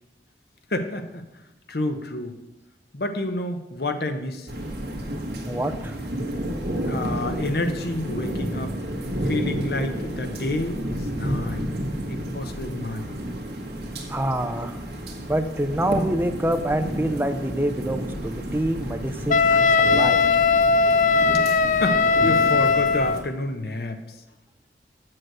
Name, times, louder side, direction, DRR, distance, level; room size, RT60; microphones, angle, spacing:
voice 1, 0.7-1.3 1.7-2.3 2.9-4.5 6.9-8.7 9.2-11.7 12.1-13.1 21.8-24.0, left 1 dB, 60° left, 7 dB, 1.0 m, -29 dB
sound 1, 4.5-23.2, equal, 65° right, 1.8 m, -31 dB
voice 2, 5.5-6.0 14.1-14.8 15.3-20.2, right 1 dB, 10° right, 6 dB, 0.6 m, -26 dB
Wind instrument woodwind instrument, 19.3-23.2, left 4 dB, 45° left, 0.4 m, -19 dB
7.8 x 6.4 x 7.7 m, 1.0 s
head